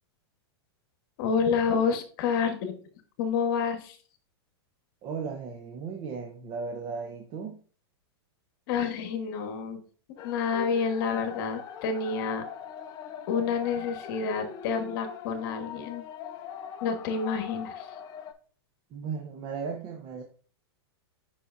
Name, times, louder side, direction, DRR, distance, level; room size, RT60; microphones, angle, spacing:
voice 1, 1.2-2.8 3.2-4.0 8.7-9.8 10.2-12.4 13.3-16.0 16.8-17.9, left 6 dB, 50° left, 6 dB, 1.3 m, -28 dB
voice 2, 5.0-7.6 18.9-20.2, right 5 dB, 30° right, 4 dB, 0.7 m, -36 dB
sound 1, 10.2-18.3, left 8 dB, 30° left, 0.6 m, -42 dB
6.7 x 5.7 x 2.6 m, 0.42 s
supercardioid pair, 145°, 14 cm